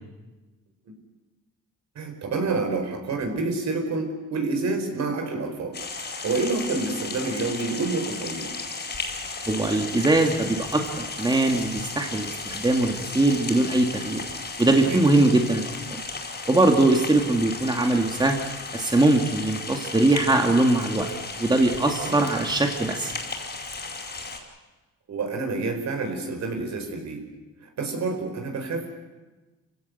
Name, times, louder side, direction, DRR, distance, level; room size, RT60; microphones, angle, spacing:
voice 1, 1.9-5.8 6.1-8.5 14.8-15.0 22.0-22.2 25.1-27.2 27.6-28.9, right 3 dB, 60° right, 4 dB, 5.0 m, -28 dB
sound 1, 5.7-24.4, left 4 dB, 35° left, 4.9 m, -35 dB
voice 2, 9.5-14.2 14.6-16.0 16.5-18.4 18.7-21.1 21.4-23.1, right 2 dB, 15° right, 3 dB, 2.3 m, -21 dB
26.5 x 16.0 x 8.1 m, 1.2 s
cardioid pair, 90°, 30 cm